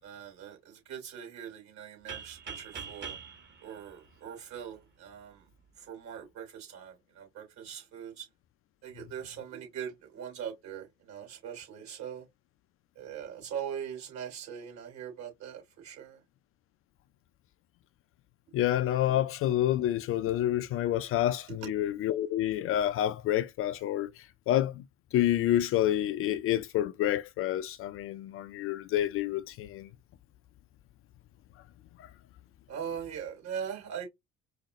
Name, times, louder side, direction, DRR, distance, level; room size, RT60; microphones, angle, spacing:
voice 1, 0.0-3.2 3.6-5.4 5.8-8.3 8.8-12.2 12.9-16.2 32.7-34.1, right 8 dB, 55° right, 3.4 m, -41 dB
sound 1, 2.1-4.8, right 6 dB, 35° right, 1.4 m, -44 dB
voice 2, 18.5-24.8 25.1-29.9 32.0-32.1, left 12 dB, 40° left, 0.4 m, -28 dB
4.9 x 2.0 x 4.0 m
figure-of-eight pair, 60°, 34 cm